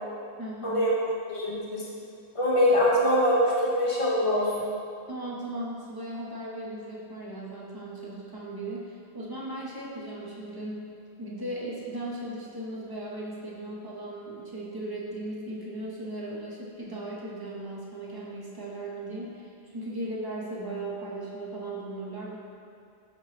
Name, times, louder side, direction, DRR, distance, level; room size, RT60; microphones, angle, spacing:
voice 1, 0.4-0.8 5.1-10.9 11.2-22.4, right 1 dB, 40° right, -5 dB, 0.3 m, -37 dB
voice 2, 1.3-1.8 2.3-4.7, left 1 dB, 30° left, -7 dB, 0.8 m, -23 dB
5.1 x 2.8 x 3.1 m, 2.4 s
omnidirectional pair, 1.1 m